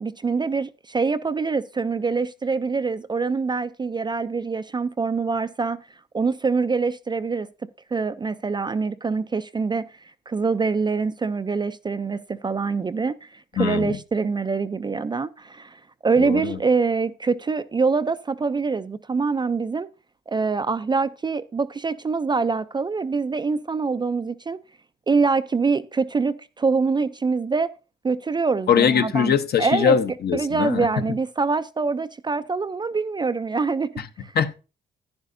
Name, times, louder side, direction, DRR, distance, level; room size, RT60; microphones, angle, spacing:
voice 1, 0.0-5.8 6.1-7.5 7.9-9.9 10.3-19.9 20.3-24.6 25.1-27.7 28.0-30.0 30.3-33.9 34.2-34.3, right 4 dB, 20° right, 0.4 m, -24 dB
voice 2, 13.6-14.0 16.2-16.6 28.7-30.9 34.0-34.1 34.4-34.6, left 7 dB, 55° left, 0.8 m, -21 dB
10.5 x 10.0 x 2.6 m
cardioid pair, 90°, 20 cm